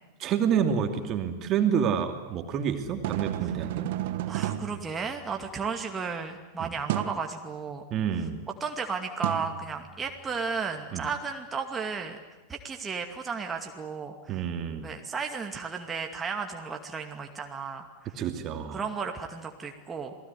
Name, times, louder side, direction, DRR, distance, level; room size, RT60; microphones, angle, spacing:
voice 1, 0.2-3.9 6.6-6.7 7.9-8.4 10.9-11.1 14.3-14.9 18.2-18.8, right 8 dB, 35° right, 6 dB, 2.6 m, -28 dB
sound 1, 2.8-5.7 6.9-7.3 9.2-10.3, right 13 dB, 50° right, 1.4 m, -33 dB
voice 2, 4.3-7.8 8.6-12.2 12.5-14.4 14.8-17.9 18.7-20.2, right 5 dB, 15° right, 3 dB, 2.4 m, -34 dB
28.0 x 20.0 x 9.9 m, 1.1 s
figure-of-eight pair, 90°, 0 cm